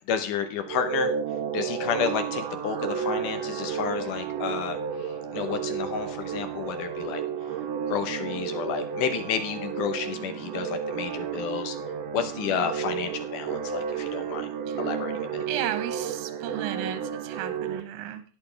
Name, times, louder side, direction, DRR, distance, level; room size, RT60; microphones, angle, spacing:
voice 1, 0.1-1.1 1.5-7.2 7.9-11.8 12.1-14.5 14.8-15.4, left 7 dB, 70° left, 9 dB, 2.1 m, -31 dB
sound 1, 0.6-17.8, right 7 dB, 85° right, 1.4 m, -32 dB
voice 2, 15.5-18.2, right 11 dB, 70° right, 10 dB, 2.6 m, -34 dB
17.5 x 6.7 x 3.4 m, 0.38 s
omnidirectional pair, 4.6 m